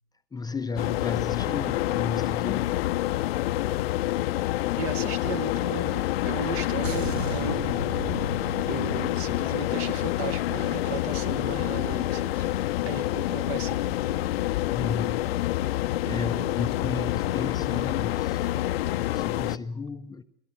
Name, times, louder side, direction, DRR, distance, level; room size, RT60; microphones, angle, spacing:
voice 1, 0.3-2.8 14.7-15.4 16.1-20.2, left 4 dB, 10° left, 0.7 m, -34 dB
sound 1, 0.8-19.6, left 15 dB, 70° left, 0.7 m, -27 dB
voice 2, 4.6-7.8 8.7-14.3 16.0-16.8, right 6 dB, 45° right, 1.8 m, -36 dB
sound 2, 6.8-11.4 11.7-11.9, right 6 dB, 80° right, 1.0 m, -38 dB
28.5 x 13.0 x 7.2 m
hypercardioid pair, 95°, 31 cm